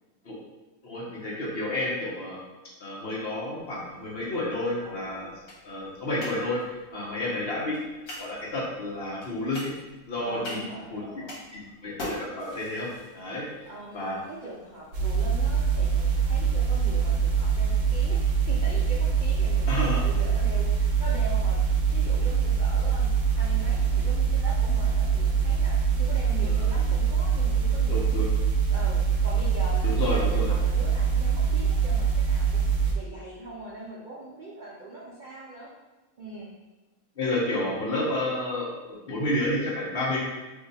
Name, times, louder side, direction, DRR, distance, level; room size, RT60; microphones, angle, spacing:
voice 1, 0.8-2.4 2.8-5.3 5.6-6.6 6.9-7.7 8.2-9.7 10.1-10.6 10.9-11.0 11.5-13.5 13.9-14.2 19.7-20.0 26.4-26.7 27.9-28.3 29.8-30.5 37.2-40.2, left 1 dB, 50° left, -5 dB, 0.9 m, -30 dB
sound 1, 3.6-21.5, left 1 dB, 75° left, 1.3 m, -46 dB
voice 2, 4.8-5.4 6.9-7.4 10.2-11.4 13.2-21.6 21.9-28.0 28.7-35.7 36.2-36.5, right 2 dB, 85° right, -6 dB, 0.4 m, -41 dB
sound 2, 14.9-32.9, right 6 dB, 65° right, 0.9 m, -24 dB
2.7 x 2.4 x 3.9 m, 1.1 s
omnidirectional pair, 1.5 m